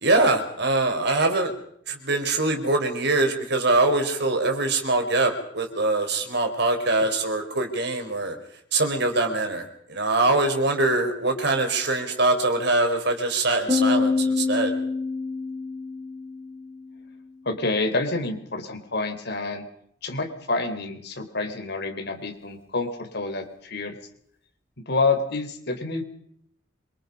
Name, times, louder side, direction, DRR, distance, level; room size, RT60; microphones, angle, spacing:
voice 1, 0.0-1.5 1.9-8.3 8.7-14.7, right 2 dB, 60° right, 5 dB, 4.5 m, -23 dB
Piano, 13.7-17.1, left 4 dB, 15° right, 5.5 m, -26 dB
voice 2, 17.5-19.6 20.0-24.0 24.9-26.0, left 3 dB, 60° left, 5 dB, 4.0 m, -28 dB
26.5 x 25.0 x 5.4 m, 0.68 s
head